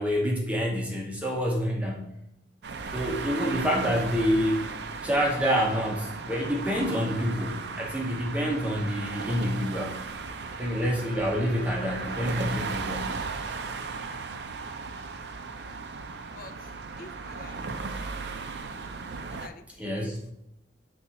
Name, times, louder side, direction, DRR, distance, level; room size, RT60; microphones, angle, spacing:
voice 1, 0.0-2.1 2.9-4.6 5.0-10.0 10.6-13.1 19.8-20.2, equal, 5° right, -1 dB, 0.7 m, -27 dB
sound 1, 2.6-19.5, right 4 dB, 65° right, 0.5 m, -36 dB
voice 2, 17.0-17.6 18.2-18.5 19.3-20.2, left 3 dB, 50° left, 9 dB, 0.4 m, -48 dB
7.0 x 2.5 x 5.6 m, 0.80 s
head